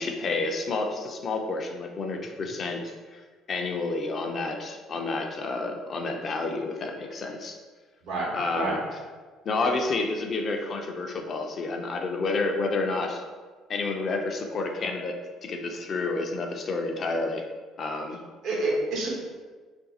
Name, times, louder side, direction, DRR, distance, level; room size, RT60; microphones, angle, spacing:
voice 1, 0.0-3.2 3.5-7.6 8.3-8.8 9.4-13.2 13.7-17.5 17.8-18.2, left 3 dB, 45° left, 3 dB, 0.5 m, -30 dB
voice 2, 18.4-19.1, right 2 dB, 75° right, -3 dB, 0.9 m, -27 dB
2.6 x 2.3 x 4.0 m, 1.4 s
supercardioid pair, 80°, 0 cm